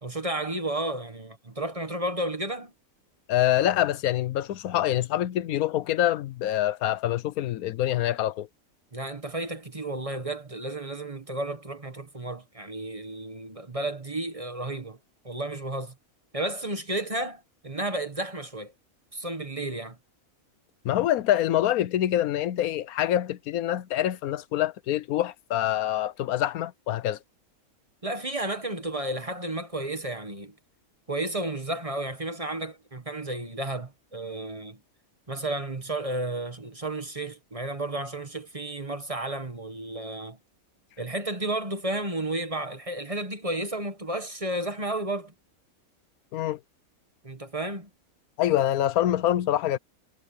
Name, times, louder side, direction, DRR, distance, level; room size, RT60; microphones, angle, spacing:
voice 1, 0.0-2.7 8.9-15.0 15.2-15.9 16.3-18.7 19.1-20.0 28.0-30.5 31.1-34.8 35.3-40.4 41.0-45.3 47.2-47.9, right 1 dB, 25° right, 1.5 m, -32 dB
voice 2, 3.3-8.5 20.8-27.2 46.3-46.6 48.4-49.8, left 12 dB, 80° left, 1.1 m, -25 dB
omnidirectional pair, 1.5 m